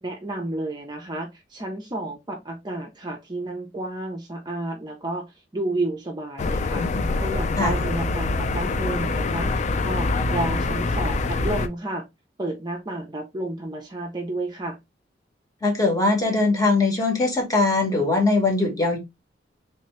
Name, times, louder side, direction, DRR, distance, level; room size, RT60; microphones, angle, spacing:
voice 1, 0.0-5.3 5.5-9.6 9.8-12.0 12.4-14.8, right 2 dB, 25° right, 0.5 m, -31 dB
sound 1, 6.4-11.7, left 3 dB, 40° left, 0.3 m, -25 dB
voice 2, 15.6-19.0, left 3 dB, 20° left, 1.1 m, -21 dB
3.2 x 2.8 x 3.1 m
head